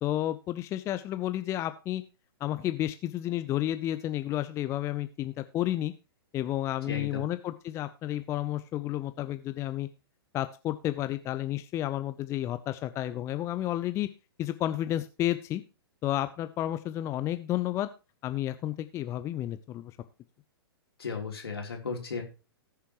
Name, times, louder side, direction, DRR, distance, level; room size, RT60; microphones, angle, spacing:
voice 1, 0.0-2.0 2.4-5.9 6.3-9.9 10.3-14.1 14.4-15.6 16.0-17.9 18.2-19.9, left 13 dB, 20° left, 11 dB, 0.6 m, -31 dB
voice 2, 6.9-7.3 21.0-22.2, left 5 dB, 70° left, 1 dB, 3.6 m, -35 dB
19.0 x 6.8 x 3.1 m, 0.30 s
figure-of-eight pair, 110°, 13 cm